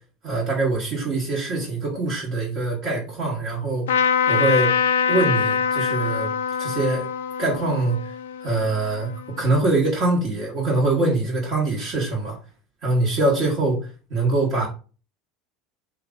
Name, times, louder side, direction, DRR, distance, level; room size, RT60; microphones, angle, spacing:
voice 1, 0.2-3.8 4.3-4.7 5.1-6.3 6.6-7.1 7.4-8.0 8.4-9.1 9.4-12.4 12.8-14.7, right 2 dB, 50° right, 1.4 m, -23 dB
Trumpet, 3.9-9.4, left 6 dB, 85° left, 0.3 m, -24 dB
3.0 x 2.4 x 3.7 m
hypercardioid pair, 85°, 0 cm